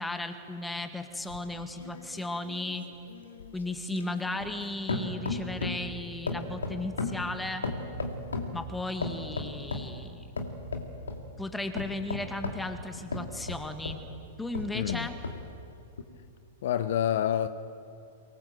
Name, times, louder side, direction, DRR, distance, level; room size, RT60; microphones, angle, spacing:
voice 1, 0.0-2.9 3.5-7.7 8.5-10.3 11.4-14.1 14.4-15.2, left 2 dB, 5° left, 1.9 m, -35 dB
sound 1, 1.3-4.6 4.9-5.9 6.3-8.6 9.0-9.9 10.4-11.3 11.8-14.1 14.5-15.5 16.0-16.1, left 3 dB, 75° left, 2.5 m, -35 dB
voice 2, 14.7-15.1 16.6-17.5, left 10 dB, 60° left, 0.8 m, -27 dB
24.0 x 20.0 x 7.7 m
figure-of-eight pair, 100°, 0 cm